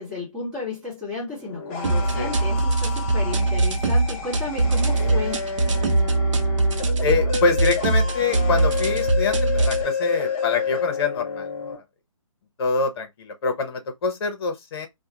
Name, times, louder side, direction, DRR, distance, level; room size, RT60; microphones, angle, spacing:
voice 1, 0.0-5.6, left 3 dB, 5° right, 1.1 m, -33 dB
sound 1, 1.3-11.8, left 6 dB, 20° left, 0.5 m, -30 dB
sound 2, 1.8-9.8, right 2 dB, 60° right, 0.7 m, -22 dB
voice 2, 7.0-11.8 12.6-14.9, left 4 dB, 45° left, 0.8 m, -25 dB
2.3 x 2.2 x 2.8 m
figure-of-eight pair, 145°, 18 cm